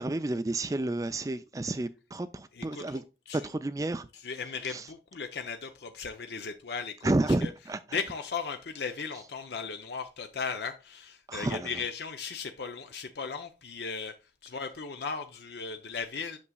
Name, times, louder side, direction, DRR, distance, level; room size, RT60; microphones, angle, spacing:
voice 1, 0.0-3.0 3.3-4.1 4.7-4.9 7.0-8.0 11.3-11.8, right 2 dB, 20° right, 0.3 m, -31 dB
voice 2, 2.6-3.0 3.3-3.4 4.2-7.1 7.4-7.5 7.9-14.1 14.4-16.4, left 5 dB, 70° left, 0.6 m, -36 dB
8.4 x 6.3 x 2.3 m
head